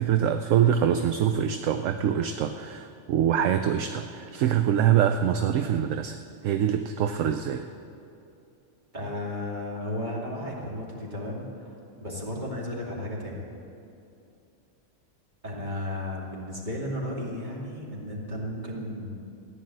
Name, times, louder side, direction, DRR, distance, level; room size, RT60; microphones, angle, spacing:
voice 1, 0.0-7.7, right 9 dB, 70° right, 8 dB, 0.9 m, -24 dB
voice 2, 8.9-11.7 12.0-13.4 15.4-19.1, left 1 dB, 35° right, -3 dB, 2.7 m, -34 dB
15.0 x 9.9 x 7.7 m, 2.6 s
omnidirectional pair, 1.5 m